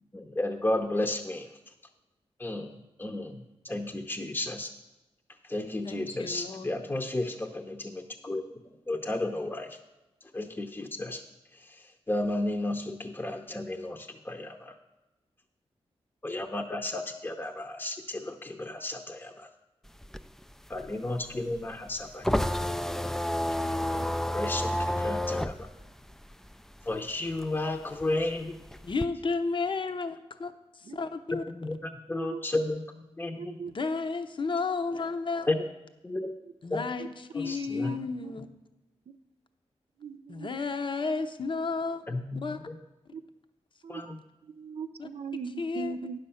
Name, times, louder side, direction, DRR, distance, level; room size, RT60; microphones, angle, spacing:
voice 1, 0.1-1.5 2.4-3.4 3.6-4.7 5.5-8.4 8.9-9.7 10.3-11.2 11.7-11.8 12.1-14.7 16.2-19.5 20.7-22.4 24.3-25.7 26.9-28.5 31.5-32.8 33.2-33.6 35.5-35.6 36.0-36.3 36.7-36.8 37.4-37.9 42.1-42.7 43.9-44.1, left 2 dB, 20° left, 4 dB, 0.8 m, -33 dB
voice 2, 5.8-6.7 28.8-31.4 33.7-35.5 36.6-38.5 40.3-42.0 42.4-42.6 45.0-45.1 45.6-46.0, left 4 dB, 50° left, 8 dB, 0.8 m, -32 dB
sound 1, 19.9-27.0 27.3-29.1, left 1 dB, 5° left, 0.3 m, -30 dB
voice 3, 33.4-33.7 37.0-37.1 37.4-38.3 40.0-40.6 43.1-43.2 43.8-44.2 44.5-46.2, right 5 dB, 65° right, 10 dB, 0.6 m, -40 dB
9.3 x 6.6 x 5.7 m, 1.0 s
cardioid pair, 60°, 11 cm